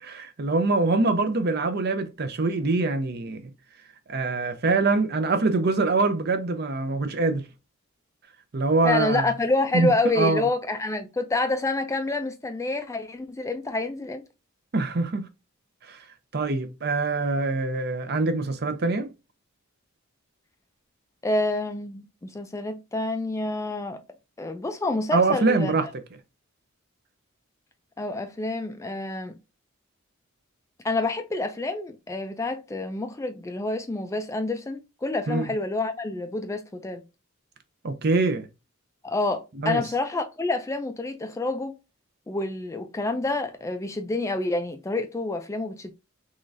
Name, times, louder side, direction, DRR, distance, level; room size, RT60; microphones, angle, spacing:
voice 1, 0.0-3.4 4.1-7.4 8.5-9.3 9.7-10.5 14.7-15.3 15.9-16.0 16.3-19.1 25.1-25.9 35.3-35.5 37.8-38.5 39.6-39.8, right 3 dB, 50° right, 0.6 m, -24 dB
voice 2, 8.8-14.2 21.2-24.0 24.4-25.7 28.0-29.4 30.8-37.0 39.0-41.7 42.3-45.9, left 2 dB, 15° left, 0.3 m, -28 dB
3.8 x 3.1 x 2.5 m
head